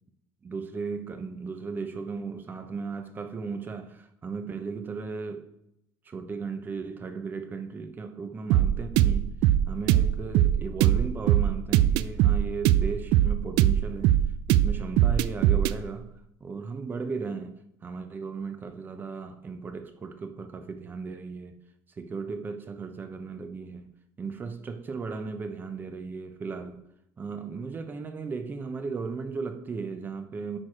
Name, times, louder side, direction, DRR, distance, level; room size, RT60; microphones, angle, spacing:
voice 1, 0.4-5.5 6.0-9.4 9.7-14.2 14.5-16.1 16.4-21.6 22.0-23.9 24.2-26.8 27.2-30.6, right 5 dB, 25° right, 0.7 m, -36 dB
sound 1, 8.5-15.8, right 12 dB, 85° right, 0.3 m, -21 dB
8.8 x 4.7 x 5.0 m
cardioid pair, 150°, 8 cm